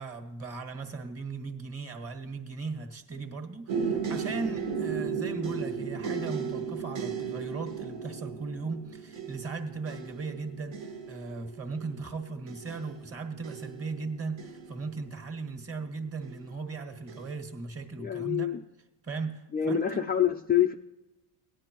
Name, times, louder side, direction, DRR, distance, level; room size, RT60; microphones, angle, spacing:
voice 1, 0.0-18.5 19.0-19.8, right 4 dB, 30° right, 4 dB, 1.7 m, -37 dB
sound 1, 3.7-15.5 16.2-16.7 17.1-17.3, right 6 dB, 70° right, 1.6 m, -36 dB
voice 2, 18.0-18.6 19.5-20.7, left 9 dB, 20° left, 4 dB, 0.4 m, -26 dB
17.5 x 9.9 x 3.0 m, 1.0 s
cardioid pair, 100°, 47 cm